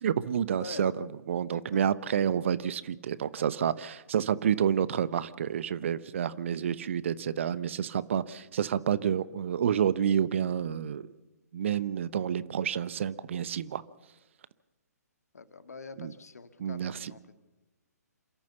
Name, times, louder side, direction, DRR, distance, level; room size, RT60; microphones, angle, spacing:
voice 1, 0.0-11.1 11.5-13.8 16.0-16.1 16.6-17.1, right 8 dB, 45° right, 17 dB, 0.9 m, -29 dB
voice 2, 0.6-0.9 1.5-1.6 15.3-17.3, left 4 dB, 65° left, 11 dB, 1.8 m, -45 dB
27.5 x 13.5 x 7.1 m, 1.1 s
figure-of-eight pair, 130°, 9 cm